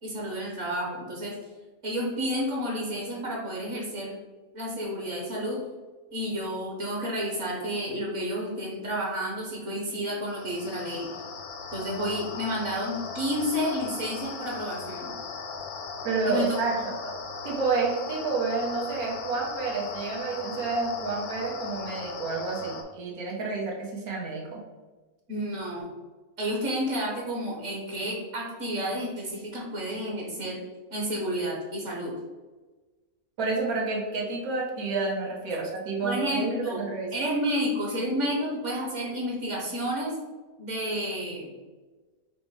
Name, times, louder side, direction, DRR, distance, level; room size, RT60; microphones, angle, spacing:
voice 1, 0.0-1.4 1.8-4.1 4.5-5.6 6.1-11.1 11.7-15.1 16.2-16.9 25.3-25.9 26.4-30.6 30.9-32.1 36.0-36.8 37.1-40.2 40.6-41.5, equal, 60° right, -3 dB, 1.3 m, -30 dB
sound 1, 10.3-22.8, left 5 dB, 85° left, 1.1 m, -38 dB
voice 2, 16.0-16.8 17.0-17.1 17.4-24.6 33.4-37.1, right 3 dB, 90° right, -2 dB, 1.5 m, -29 dB
4.8 x 2.1 x 4.7 m, 1.3 s
omnidirectional pair, 1.5 m